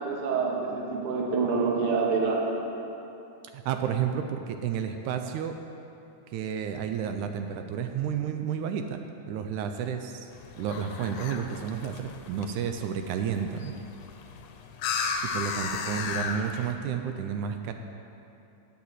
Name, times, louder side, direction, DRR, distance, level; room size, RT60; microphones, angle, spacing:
voice 1, 0.0-2.6, right 4 dB, 50° right, -2 dB, 2.0 m, -27 dB
voice 2, 3.5-5.6 6.3-9.0 9.3-10.3 10.6-13.7 15.2-17.7, right 8 dB, 80° right, 6 dB, 1.9 m, -31 dB
sound 1, 10.3-16.7, left 5 dB, 80° left, 2.1 m, -35 dB
8.5 x 8.2 x 7.8 m, 2.8 s
omnidirectional pair, 3.8 m